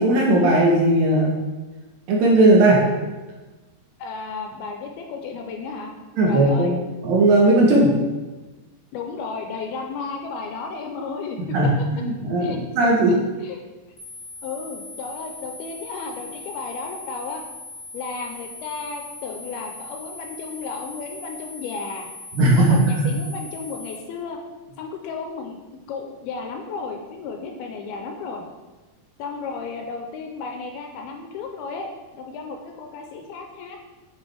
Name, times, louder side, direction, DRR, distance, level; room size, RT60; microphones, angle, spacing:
voice 1, 0.0-1.3 2.1-2.8 6.2-6.8 7.0-8.0 11.4-13.2 22.3-23.1, right 1 dB, 70° right, -2 dB, 2.5 m, -17 dB
voice 2, 4.0-5.9 6.3-6.8 8.9-11.6 12.4-13.2 13.4-13.6 14.4-17.4 17.9-22.1 22.7-24.4 24.8-28.4 29.2-33.8, left 4 dB, 80° left, 3 dB, 2.4 m, -33 dB
sound 1, 14.0-24.0, left 2 dB, 40° left, 1.2 m, -40 dB
8.4 x 5.9 x 3.3 m, 1.2 s
omnidirectional pair, 4.7 m